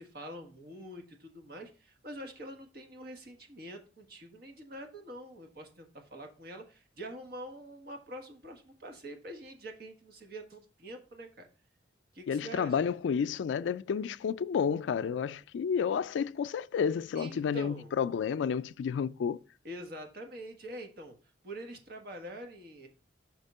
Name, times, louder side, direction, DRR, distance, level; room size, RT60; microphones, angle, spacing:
voice 1, 0.0-11.5 12.1-12.9 17.1-17.9 19.6-21.2 21.4-22.9, right 1 dB, 55° right, 1.3 m, -45 dB
voice 2, 12.3-19.4, left 7 dB, 85° left, 0.3 m, -31 dB
5.9 x 3.6 x 5.4 m
head